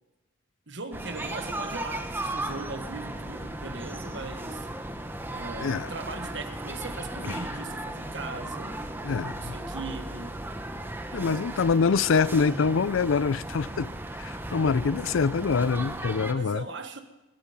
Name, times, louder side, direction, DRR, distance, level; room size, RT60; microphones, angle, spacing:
voice 1, 0.7-4.7 5.3-10.4 11.1-11.6 16.3-17.0, right 3 dB, 60° right, 1.5 m, -39 dB
sound 1, 0.9-16.3, right 1 dB, 10° right, 0.8 m, -36 dB
voice 2, 5.6-5.9 7.3-7.4 9.0-9.5 11.1-13.9 14.2-16.6, left 5 dB, 75° left, 0.5 m, -25 dB
Piano, 7.1-10.8, equal, 20° left, 0.9 m, -52 dB
22.0 x 8.7 x 5.4 m
head